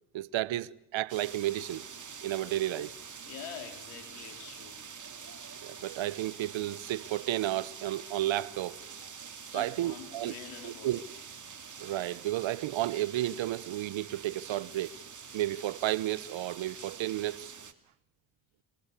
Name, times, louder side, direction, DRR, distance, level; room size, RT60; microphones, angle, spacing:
voice 1, 0.1-1.8 2.2-2.9 5.6-8.8 9.5-10.3 10.6-11.1 11.8-14.9 15.3-17.5, right 14 dB, 65° right, 1.1 m, -32 dB
sound 1, 1.1-17.7, right 6 dB, 35° right, 2.9 m, -46 dB
voice 2, 3.2-4.8 9.5-11.0, left 8 dB, 85° left, 4.2 m, -46 dB
27.0 x 25.5 x 8.3 m
supercardioid pair, 55°, 49 cm